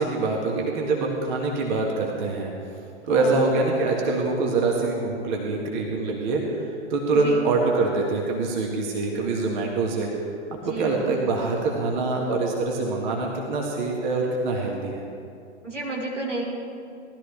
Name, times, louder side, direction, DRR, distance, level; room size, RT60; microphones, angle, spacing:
voice 1, 0.0-2.5 3.1-6.4 6.9-10.1 10.5-15.0, right 3 dB, 40° right, 0 dB, 1.9 m, -24 dB
voice 2, 3.1-3.4 7.1-7.4 10.6-11.5 15.6-16.4, right 2 dB, 85° right, -3 dB, 3.2 m, -32 dB
18.5 x 13.0 x 3.5 m, 2.5 s
figure-of-eight pair, 110°, 35 cm